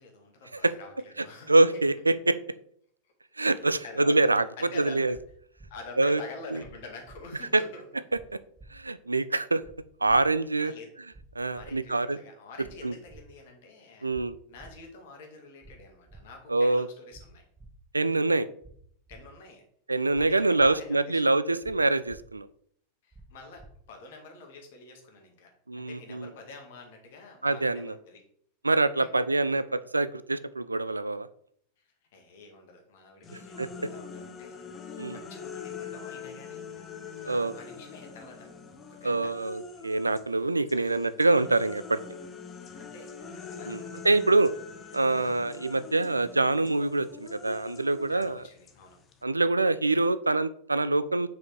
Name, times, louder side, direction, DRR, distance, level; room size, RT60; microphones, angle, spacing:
voice 1, 0.0-1.6 1.9-2.0 3.5-4.3 4.6-5.2 5.7-7.8 10.6-10.9 11.5-14.1 14.5-17.4 19.1-19.6 20.0-21.3 23.0-23.6 23.9-28.2 29.0-29.2 31.8-36.7 37.2-38.5 38.9-39.3 40.7-41.0 42.8-44.2 45.1-45.3 48.1-49.0, left 3 dB, 55° left, 2 dB, 2.0 m, -48 dB
voice 2, 1.5-2.4 3.4-4.5 4.8-5.1 6.0-6.2 6.5-6.6 7.5-7.6 8.7-9.6 10.0-10.7 11.4-12.2 12.8-12.9 14.0-14.4 16.5-16.9 17.9-18.5 19.9-22.5 25.7-26.3 27.4-27.9 28.6-31.3 33.6-33.7 35.0-35.2 37.2-37.5 39.0-42.0 43.7-43.8 44.0-44.5 44.9-48.4 49.2-51.3, right 2 dB, 80° right, 15 dB, 0.4 m, -25 dB
sound 1, 5.1-5.2 5.6-5.7 6.6-6.7 7.1-7.2 8.1-8.3 8.6-8.7 9.6-9.7 10.1-10.2 11.1-11.2 11.6-11.7 12.6-12.8 13.1-13.2 14.1-14.2 14.6-14.7 15.6-15.8 16.1-16.2 17.1-17.2 17.6-17.7 18.6-18.7 19.1-19.2 20.1-20.3 20.6-20.7 21.6-21.8 22.1-22.2 23.1-23.3 23.6-23.7, right 3 dB, 15° right, 1.1 m, -50 dB
sound 2, 33.2-40.3 40.7-49.2, left 6 dB, 25° left, 1.0 m, -44 dB
5.7 x 4.9 x 4.6 m, 0.63 s
figure-of-eight pair, 90°, 0 cm